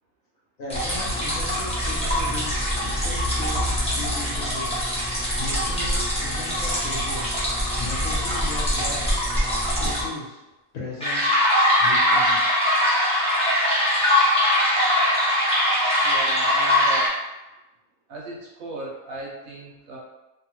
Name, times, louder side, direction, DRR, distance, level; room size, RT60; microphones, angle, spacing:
voice 1, 0.6-4.7 5.0-7.3 7.8-9.2 9.8-10.4 10.7-11.3 11.8-12.5, left 2 dB, 85° left, -5 dB, 1.3 m, -37 dB
sound 1, 0.7-10.0 11.0-17.1, equal, 5° left, 0.6 m, -22 dB
voice 2, 16.0-17.1 18.1-20.0, right 2 dB, 80° right, -4 dB, 1.3 m, -36 dB
3.2 x 2.3 x 3.0 m, 1.0 s
omnidirectional pair, 1.4 m